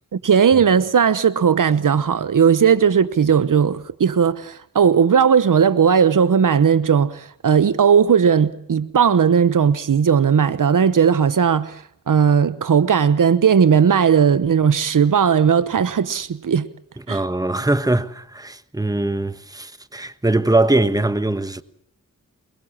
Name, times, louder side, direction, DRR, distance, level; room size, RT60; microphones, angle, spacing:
voice 1, 0.1-11.8 12.1-16.7 17.1-17.2, right 7 dB, 75° right, 0.9 m, -17 dB
voice 2, 17.1-21.6, right 2 dB, 10° right, 1.3 m, -21 dB
23.0 x 23.0 x 7.4 m
cardioid pair, 55°, 32 cm